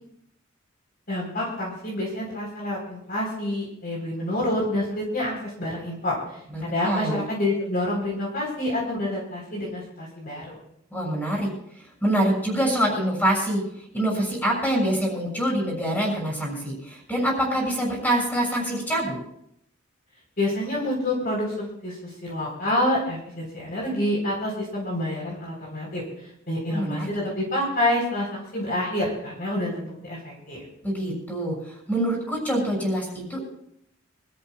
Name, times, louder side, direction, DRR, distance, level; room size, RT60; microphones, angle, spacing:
voice 1, 1.1-6.2 6.6-10.6 20.4-26.0 26.5-30.6, left 1 dB, 45° left, -2 dB, 4.2 m, -28 dB
voice 2, 6.5-7.2 10.9-11.5 12.0-13.6 13.9-19.2 26.7-27.1 30.8-33.5, right 1 dB, 10° left, -1 dB, 6.6 m, -25 dB
25.5 x 14.0 x 2.4 m, 0.73 s
head